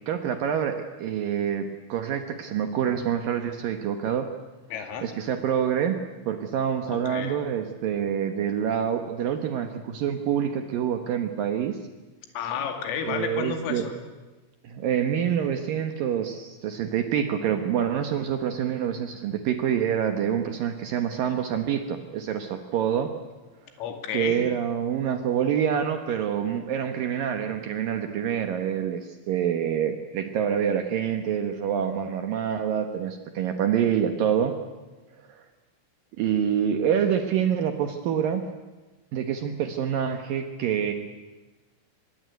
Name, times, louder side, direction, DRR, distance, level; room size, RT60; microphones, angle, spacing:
voice 1, 0.1-4.3 5.0-6.0 6.3-11.8 13.0-13.9 14.6-23.1 24.1-34.5 35.3-35.4 36.2-38.4 39.1-40.9, right 8 dB, 80° right, 7 dB, 2.0 m, -26 dB
voice 2, 4.7-5.1 6.9-7.4 12.3-13.9 23.8-24.5, left 7 dB, 85° left, 6 dB, 5.0 m, -31 dB
24.5 x 20.5 x 9.4 m, 1.2 s
omnidirectional pair, 5.8 m